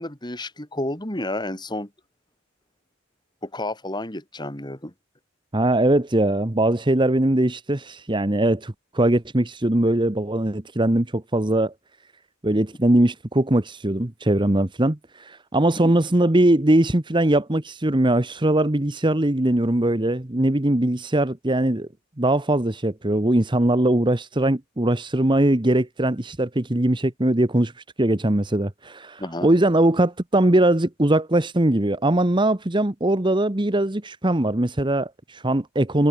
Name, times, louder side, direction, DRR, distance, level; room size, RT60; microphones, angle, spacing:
voice 1, 0.0-1.9 3.4-4.9 15.8-15.9 29.2-29.5, left 1 dB, 20° left, 3.4 m, -31 dB
voice 2, 5.5-11.7 12.4-21.9 22.2-27.7 28.0-36.1, right 1 dB, 20° right, 1.1 m, -21 dB
head